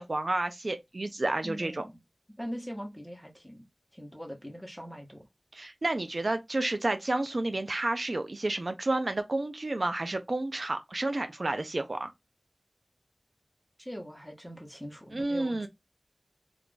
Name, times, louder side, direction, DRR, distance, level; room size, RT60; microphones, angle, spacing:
voice 1, 0.0-1.8 5.5-12.1 15.1-15.7, right 2 dB, 65° right, 0.4 m, -30 dB
voice 2, 1.4-2.0 2.4-3.7 3.9-5.2 13.8-15.7, equal, ahead, 0.9 m, -41 dB
2.4 x 2.3 x 3.6 m
wide cardioid pair, 45°, 0 cm